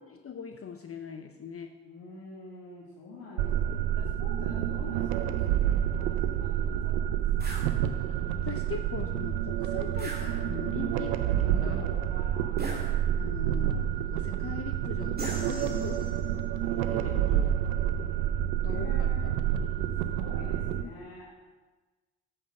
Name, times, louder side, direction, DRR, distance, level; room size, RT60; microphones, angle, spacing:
voice 1, 0.0-1.7 8.4-11.8 13.2-16.0 16.9-17.6 18.6-19.3 19.7-19.8 20.8-20.9, left 6 dB, 35° left, 7 dB, 0.7 m, -41 dB
voice 2, 1.8-7.7 11.4-12.8 15.6-16.5 18.7-19.4 20.0-21.4, left 2 dB, 65° left, -6 dB, 1.9 m, -46 dB
sound 1, 3.4-20.8, right 10 dB, 85° right, 0.6 m, -29 dB
sound 2, 7.4-7.7 10.0-10.8 12.6-13.4 15.2-16.3, right 2 dB, 25° right, 2.3 m, -40 dB
8.3 x 5.7 x 6.4 m, 1.3 s
hypercardioid pair, 50°, 41 cm